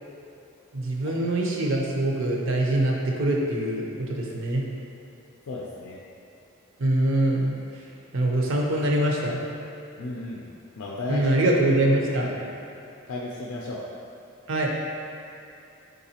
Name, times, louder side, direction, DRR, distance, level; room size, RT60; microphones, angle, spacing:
voice 1, 0.7-4.6 6.8-7.6 8.1-9.4 11.1-12.3 14.5-14.7, right 1 dB, 60° right, -1 dB, 0.6 m, -24 dB
voice 2, 5.5-6.0 10.0-10.5 10.8-11.3 12.1-12.5 13.1-13.8, left 2 dB, 85° left, -3 dB, 0.4 m, -34 dB
4.7 x 3.9 x 2.8 m, 2.7 s
head